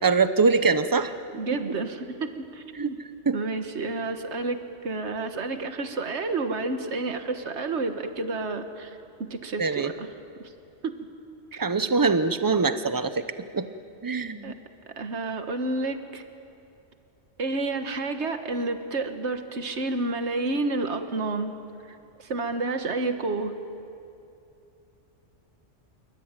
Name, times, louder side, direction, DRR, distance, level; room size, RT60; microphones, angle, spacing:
voice 1, 0.0-1.1 2.7-2.9 3.3-3.4 9.6-9.9 11.6-13.7 14.0-14.6, right 4 dB, 20° right, 11 dB, 0.8 m, -23 dB
voice 2, 1.3-3.0 3.3-4.6 4.8-10.1 10.8-10.9 11.5-11.6 14.4-14.5 15.0-16.2 17.4-21.5 22.2-23.5, right 3 dB, 65° right, 7 dB, 1.8 m, -30 dB
27.0 x 24.0 x 9.0 m, 2.7 s
omnidirectional pair, 1.2 m